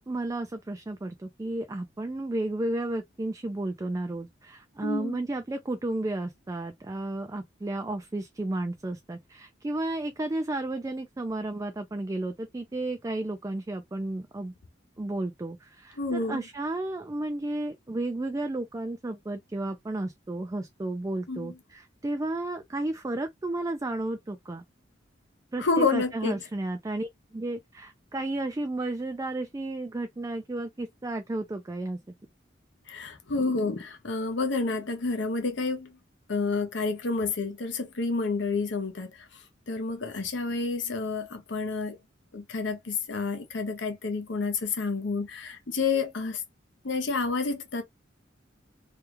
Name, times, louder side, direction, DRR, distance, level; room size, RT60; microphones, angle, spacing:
voice 1, 0.0-14.5 15.0-24.6 25.5-32.0, right 2 dB, 15° right, 0.3 m, -33 dB
voice 2, 4.8-5.2 16.0-16.4 21.3-21.6 25.6-26.4 32.9-36.0 36.3-39.3 39.7-42.0 42.3-46.4 46.8-47.8, left 4 dB, 65° left, 0.8 m, -29 dB
3.3 x 2.3 x 3.0 m
head